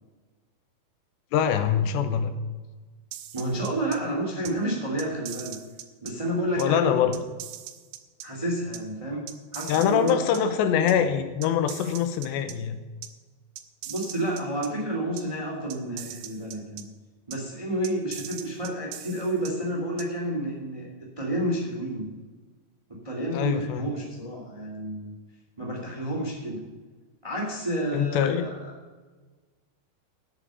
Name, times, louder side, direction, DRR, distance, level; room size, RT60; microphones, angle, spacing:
voice 1, 1.3-2.3 6.6-7.2 9.7-12.8 23.3-23.9 27.9-28.5, left 8 dB, 85° left, 8 dB, 3.1 m, -24 dB
sound 1, 3.1-4.0 4.5-4.6 5.0-6.1 6.6-6.7 7.1-8.3 8.7-8.8 9.3-10.4 10.9-11.0 11.4-12.6 13.0-13.1 13.6-14.7 15.2-15.3 15.7-16.8 17.3-17.4 17.8-19.5 20.0-20.1, right 12 dB, 90° right, 3.0 m, -40 dB
voice 2, 3.3-5.6 6.0-6.9 8.2-9.3 9.5-10.4 13.8-16.9 17.3-20.9 21.2-22.1 22.9-25.1 25.6-26.6 27.2-28.6, right 1 dB, 10° right, -1 dB, 1.7 m, -30 dB
11.5 x 7.3 x 6.9 m, 1.3 s
omnidirectional pair, 5.0 m